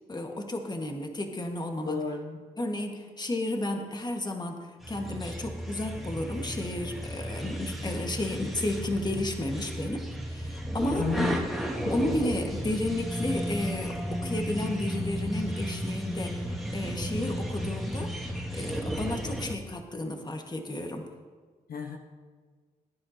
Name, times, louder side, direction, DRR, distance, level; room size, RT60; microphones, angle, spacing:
voice 1, 0.1-2.0 2.6-11.4 11.9-18.1 18.5-21.1, left 1 dB, 25° left, 3 dB, 1.6 m, -32 dB
voice 2, 1.9-2.5 11.0-11.5 11.8-12.0 21.7-22.0, left 5 dB, 70° left, 3 dB, 1.2 m, -32 dB
sound 1, 4.8-19.5, equal, ahead, 2.1 m, -33 dB
19.5 x 10.0 x 2.9 m, 1.5 s
cardioid pair, 60°, 16 cm